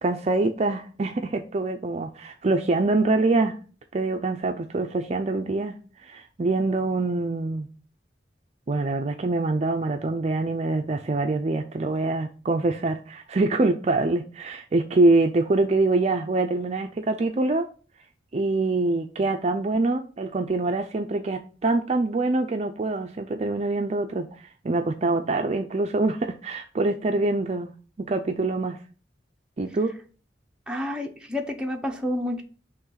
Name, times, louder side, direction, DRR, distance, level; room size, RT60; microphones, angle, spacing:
voice 1, 0.0-3.6 3.9-5.8 6.0-7.7 8.7-17.7 18.3-24.3 24.6-27.7 28.0-28.8 29.6-29.9, right 2 dB, 35° right, 6 dB, 0.4 m, -24 dB
voice 2, 30.7-32.4, left 1 dB, 5° right, 1 dB, 0.8 m, -29 dB
5.8 x 3.1 x 5.7 m, 0.38 s
head